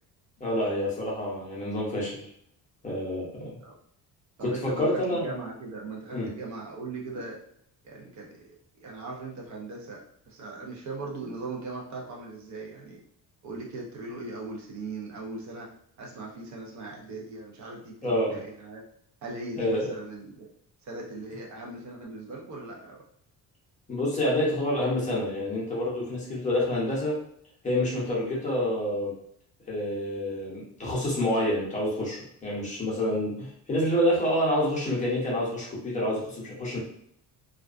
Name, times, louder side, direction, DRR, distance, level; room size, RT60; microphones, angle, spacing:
voice 1, 0.4-2.3 2.8-3.6 4.4-5.3 6.1-6.3 18.0-18.4 19.6-19.9 23.9-27.1 27.6-29.1 29.7-36.8, left 1 dB, 20° left, -5 dB, 0.6 m, -28 dB
voice 2, 4.4-7.4 7.8-8.5 8.8-13.0 13.4-18.8 19.2-20.5 20.8-23.0, right 3 dB, 55° right, -1 dB, 0.5 m, -39 dB
2.4 x 2.2 x 2.3 m, 0.69 s
cardioid pair, 180°, 35 cm